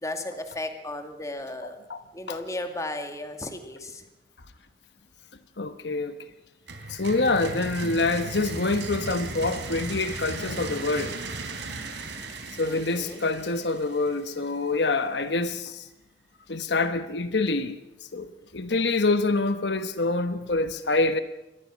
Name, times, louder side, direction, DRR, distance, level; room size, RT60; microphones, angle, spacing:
voice 1, 0.0-1.8 2.1-4.0 12.6-13.2, left 1 dB, 20° left, 2.2 m, -35 dB
voice 2, 1.6-2.0 2.3-2.4 5.6-6.1 6.9-11.2 12.6-15.9 16.5-17.8 18.1-21.2, left 3 dB, 70° left, 1.2 m, -26 dB
sound 1, 6.7-14.4, right 3 dB, 85° right, 4.0 m, -36 dB
24.5 x 19.5 x 6.3 m
head